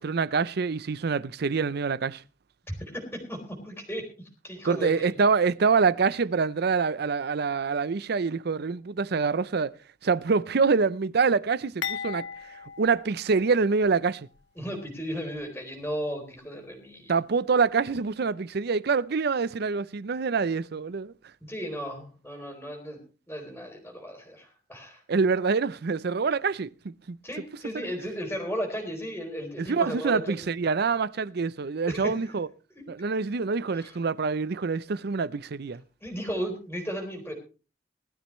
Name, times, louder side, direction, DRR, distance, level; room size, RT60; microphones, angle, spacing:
voice 1, 0.0-2.2 4.6-9.7 10.0-14.3 17.1-21.1 25.1-27.2 27.7-27.9 29.6-32.5 32.9-35.8, right 5 dB, 60° right, 0.5 m, -26 dB
voice 2, 2.9-5.1 14.6-17.1 21.4-23.0 23.3-25.0 27.2-30.4 31.9-32.1 32.7-32.8 33.7-33.9 36.0-37.3, equal, 10° left, 3.5 m, -35 dB
sound 1, 11.8-14.0 14.3-14.5 15.4-15.5, left 7 dB, 80° left, 1.4 m, -37 dB
20.0 x 12.5 x 3.1 m
head